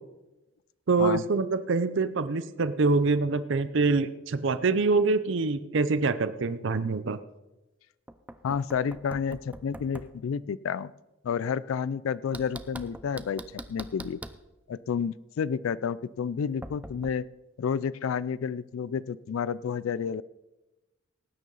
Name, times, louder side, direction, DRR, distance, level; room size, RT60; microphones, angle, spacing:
voice 1, 0.9-7.2, right 3 dB, 65° right, 13 dB, 0.6 m, -25 dB
Knock, 8.1-10.2 12.3-14.5 16.6-17.1, right 1 dB, 5° right, 0.5 m, -43 dB
voice 2, 8.4-10.9 11.2-14.2 14.7-17.3 17.6-20.2, left 7 dB, 85° left, 19 dB, 0.3 m, -30 dB
18.0 x 9.3 x 4.0 m, 1.0 s
head